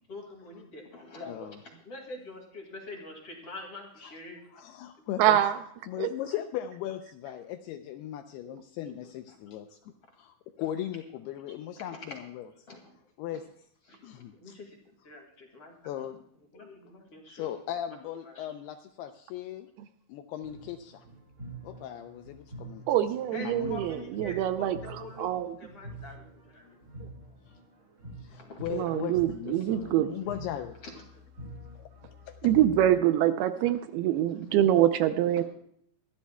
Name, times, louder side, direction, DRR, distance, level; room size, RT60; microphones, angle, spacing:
voice 1, 0.1-4.6 5.0-5.3 9.3-9.4 10.6-10.7 11.5-12.2 12.7-13.0 13.3-13.4 13.9-14.8 15.0-15.7 16.5-17.5 18.2-18.5 23.3-25.3 25.6-26.8 28.4-28.9 30.8-31.2 33.6-33.7 34.5-34.6, left 2 dB, 40° left, 1 dB, 2.6 m, -45 dB
voice 2, 1.3-1.6 4.0-4.1 4.5-5.4 5.9-12.5 13.2-13.4 14.0-14.6 15.9-16.2 17.3-19.7 20.1-21.1 21.6-22.8 23.4-23.8 27.5-27.6 28.2-30.8 31.8-32.4, left 11 dB, 80° left, 7 dB, 2.4 m, -38 dB
voice 3, 5.2-5.6 6.0-6.1 22.9-24.8 25.2-25.5 28.7-30.1 32.4-35.4, right 12 dB, 80° right, 10 dB, 2.3 m, -25 dB
sound 1, 20.4-33.0, right 1 dB, 65° right, 0.7 m, -46 dB
24.5 x 13.0 x 2.3 m, 0.66 s
omnidirectional pair, 5.0 m